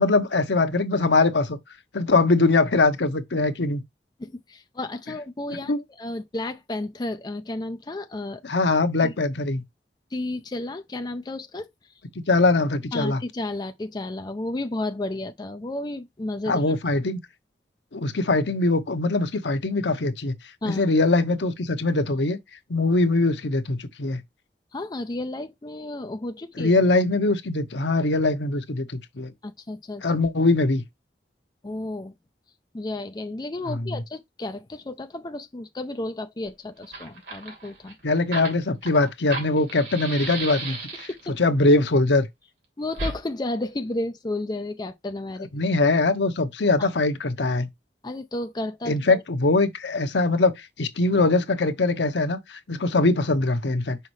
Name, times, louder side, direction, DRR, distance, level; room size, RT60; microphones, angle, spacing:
voice 1, 0.0-1.6 1.9-3.8 5.7-5.8 8.4-9.6 12.3-13.2 16.5-17.2 17.9-20.3 20.6-22.4 22.7-24.2 26.6-29.3 30.0-30.8 33.7-33.9 38.0-41.1 41.4-42.3 45.5-47.7 48.9-54.0, left 2 dB, 80° left, 0.9 m, -22 dB
voice 2, 4.2-8.4 9.0-9.1 10.1-11.7 12.9-16.8 20.6-20.9 24.7-26.7 29.4-30.0 31.6-32.1 32.7-37.9 41.3-41.4 42.8-45.5 46.8-46.9 48.0-49.2, left 2 dB, 25° left, 0.4 m, -32 dB
Fire, 36.4-36.5 36.8-41.3 42.9-43.2, right 2 dB, 90° right, 2.8 m, -34 dB
5.6 x 5.3 x 3.2 m
head